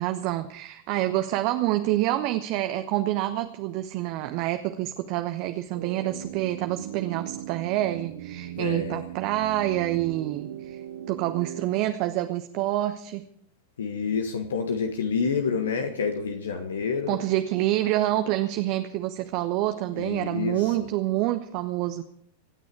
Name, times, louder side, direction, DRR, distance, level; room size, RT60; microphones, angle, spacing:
voice 1, 0.0-10.8 11.1-13.3 17.1-22.0, right 15 dB, 45° right, 8 dB, 1.0 m, -27 dB
sound 1, 5.7-11.6, right 10 dB, 65° right, 1.6 m, -38 dB
voice 2, 8.5-9.0 13.8-17.2 19.9-20.9, left 5 dB, 65° left, 5 dB, 1.6 m, -28 dB
27.0 x 9.7 x 4.8 m, 0.68 s
figure-of-eight pair, 90°, 0 cm